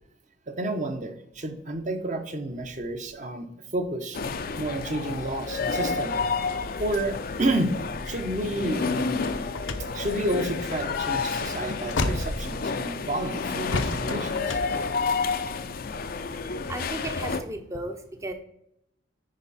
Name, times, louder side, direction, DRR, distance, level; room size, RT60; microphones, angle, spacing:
voice 1, 0.5-3.5 3.7-4.2 4.6-6.2 6.8-7.7 8.1-9.3 9.9-14.6, right 1 dB, 40° right, 6 dB, 1.0 m, -30 dB
sound 1, 4.1-17.4, left 4 dB, 50° left, 0.5 m, -30 dB
sound 2, 9.2-13.1 13.7-15.7, left 2 dB, 75° left, 0.8 m, -32 dB
voice 2, 16.7-18.3, right 2 dB, 15° right, 6 dB, 0.7 m, -35 dB
10.5 x 4.5 x 4.2 m, 0.76 s
head